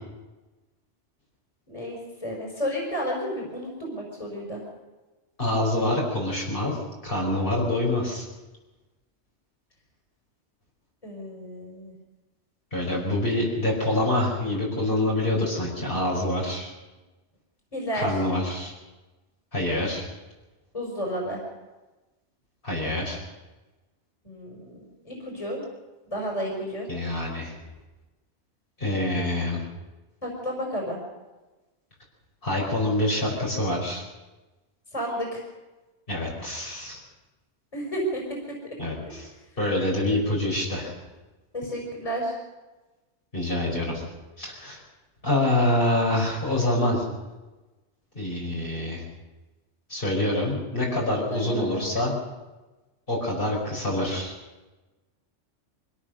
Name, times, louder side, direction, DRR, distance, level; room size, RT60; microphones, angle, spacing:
voice 1, 1.7-4.6 11.0-11.9 17.7-18.1 20.7-21.4 24.2-25.6 26.1-26.9 30.2-31.0 34.9-35.4 37.7-38.2 39.0-39.1 41.5-42.4 51.3-51.9, equal, 30° left, -1 dB, 5.6 m, -31 dB
voice 2, 5.4-6.8 7.0-8.2 12.7-16.7 17.9-18.7 19.5-20.0 22.6-23.2 26.9-27.5 28.8-29.6 32.4-34.0 36.1-37.0 38.8-39.3 39.6-40.9 43.3-44.0 44.4-44.8 45.2-47.1 48.1-49.0 49.9-52.1 53.1-54.3, left 1 dB, 50° left, -4 dB, 5.8 m, -26 dB
24.5 x 17.5 x 6.7 m, 1.2 s
omnidirectional pair, 1.2 m